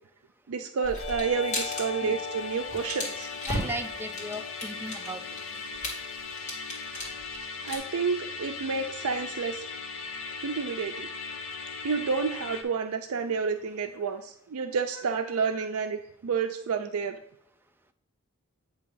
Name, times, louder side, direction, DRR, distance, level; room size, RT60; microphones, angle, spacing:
voice 1, 0.5-3.4 7.6-9.7 10.4-11.1 11.8-17.2, right 5 dB, 85° right, 6 dB, 0.4 m, -30 dB
sound 1, 0.8-1.8 2.1-2.3 2.6-7.8, left 1 dB, 35° left, 1.9 m, -36 dB
Musical instrument, 1.0-12.6, left 5 dB, 65° left, 0.8 m, -38 dB
voice 2, 3.4-5.2 5.5-5.6, equal, 10° right, 6 dB, 0.4 m, -36 dB
8.5 x 2.9 x 5.4 m, 0.73 s
head